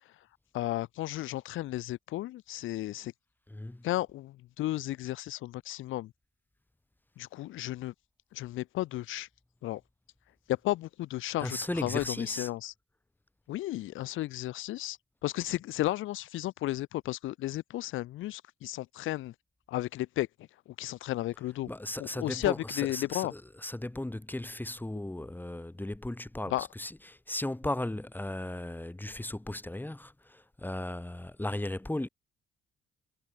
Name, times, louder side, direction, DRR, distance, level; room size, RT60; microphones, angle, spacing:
voice 1, 0.5-3.1 3.8-6.1 7.2-7.9 8.3-9.3 9.6-9.8 10.5-12.7 13.5-19.3 19.7-20.3 20.7-21.7 22.0-23.3 26.5-26.7, left 16 dB, 90° left, 2.5 m, -33 dB
voice 2, 3.5-3.9 11.4-12.5 21.7-32.1, left 1 dB, 10° left, 5.5 m, -36 dB
cardioid pair, 90°, 20 cm